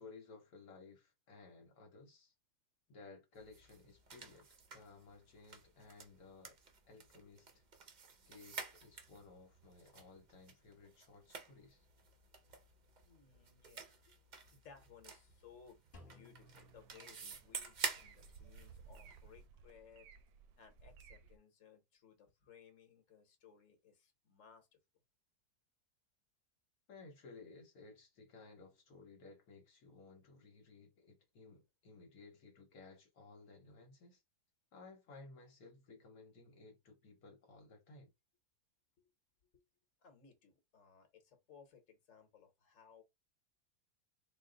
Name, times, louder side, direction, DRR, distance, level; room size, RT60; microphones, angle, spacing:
voice 1, 0.0-2.3 2.9-4.5 4.7-6.6 6.9-7.6 8.3-11.9 26.9-34.2 34.7-38.1, left 3 dB, 75° left, 1.4 m, -58 dB
sound 1, 3.3-19.4, right 5 dB, 50° right, 0.5 m, -50 dB
voice 2, 13.1-14.1 14.5-15.8 16.1-20.1 20.6-24.8 39.0-39.1 39.5-39.6 40.0-43.0, left 7 dB, 60° left, 1.5 m, -62 dB
Drum, 15.9-17.9, left 2 dB, 35° left, 1.3 m, -61 dB
sound 2, 16.4-21.4, right 5 dB, 85° right, 1.1 m, -59 dB
4.1 x 2.1 x 3.8 m
omnidirectional pair, 1.6 m